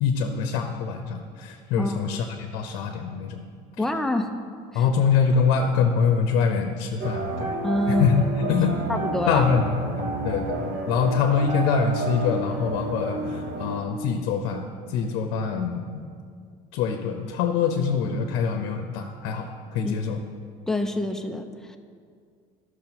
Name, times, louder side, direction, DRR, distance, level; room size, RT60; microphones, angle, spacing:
voice 1, 0.0-3.4 4.7-7.6 7.9-8.2 8.5-8.9 9.3-16.0 16.7-20.2, left 6 dB, 80° left, 4 dB, 0.7 m, -24 dB
voice 2, 3.8-4.3 4.7-4.9 7.6-8.6 8.9-9.4 19.8-20.0 20.7-21.8, left 1 dB, 5° left, 5 dB, 0.4 m, -26 dB
sound 1, 7.0-13.8, right 2 dB, 65° right, 0.9 m, -30 dB
12.5 x 6.4 x 2.9 m, 2.1 s
cardioid pair, 150°, 16 cm